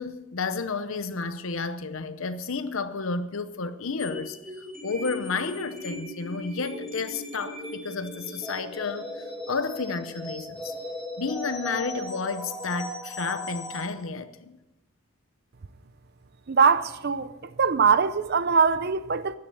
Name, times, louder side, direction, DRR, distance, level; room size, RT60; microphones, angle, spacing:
voice 1, 0.0-10.7 11.2-14.6, left 4 dB, 70° left, 0.8 m, -31 dB
sound 1, 4.0-13.9, left 1 dB, ahead, 4.8 m, -38 dB
voice 2, 16.5-17.3 17.6-19.4, right 5 dB, 50° right, 0.5 m, -22 dB
13.0 x 10.5 x 7.1 m
head